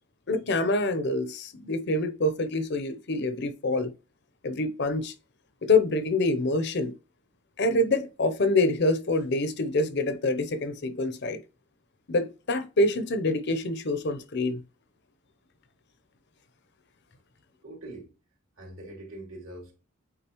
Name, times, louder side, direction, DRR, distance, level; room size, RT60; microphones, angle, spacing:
voice 1, 0.3-3.9 4.4-5.1 5.6-7.0 7.6-11.4 12.1-14.6, left 2 dB, 50° left, 0.7 m, -26 dB
voice 2, 17.6-18.1 18.6-19.7, right 1 dB, 65° right, 2.9 m, -42 dB
8.9 x 3.7 x 3.0 m
head